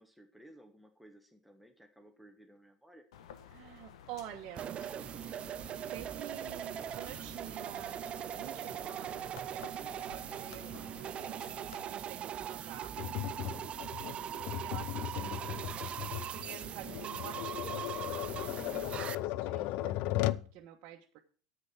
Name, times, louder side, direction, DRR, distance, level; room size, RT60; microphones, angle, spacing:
voice 1, 0.0-3.1 9.7-10.0 13.3-13.7 18.5-18.9, right 1 dB, ahead, 3 dB, 1.4 m, -57 dB
sound 1, 3.1-11.8, left 9 dB, 80° left, 1.2 m, -54 dB
voice 2, 3.5-5.1 5.9-13.0 14.2-18.0 18.3-21.2, right 11 dB, 55° right, 1 dB, 1.3 m, -49 dB
sound 2, 4.6-19.2, right 10 dB, 35° right, 0.5 m, -41 dB
Tap, 13.0-20.5, left 15 dB, 60° left, 0.5 m, -37 dB
9.7 x 8.1 x 5.9 m, 0.41 s
hypercardioid pair, 95°, 3 cm